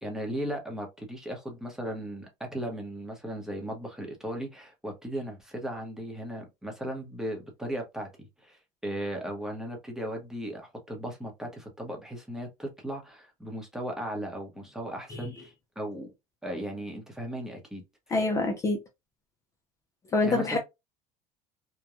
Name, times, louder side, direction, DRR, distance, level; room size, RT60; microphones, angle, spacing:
voice 1, 0.0-16.1 16.4-17.8 20.2-20.6, right 1 dB, 5° right, 0.9 m, -37 dB
voice 2, 18.1-18.8 20.1-20.6, left 3 dB, 25° left, 0.5 m, -26 dB
3.0 x 2.2 x 2.3 m
cardioid pair, 135°, 13 cm